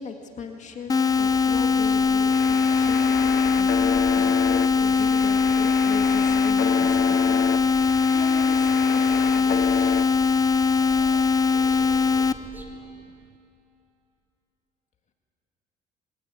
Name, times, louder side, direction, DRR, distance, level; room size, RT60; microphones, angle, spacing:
voice 1, 0.0-9.9, left 5 dB, 45° left, 4 dB, 2.1 m, -39 dB
sound 1, 0.9-12.3, left 5 dB, 20° left, 0.8 m, -21 dB
sound 2, 1.1-12.6, right 1 dB, 10° right, 2.9 m, -44 dB
sound 3, 2.3-10.0, left 11 dB, 65° left, 1.0 m, -33 dB
voice 2, 10.7-11.5 12.7-13.0, right 11 dB, 75° right, 9 dB, 1.0 m, -48 dB
22.5 x 18.5 x 9.0 m, 2.6 s
cardioid pair, 110°, 17 cm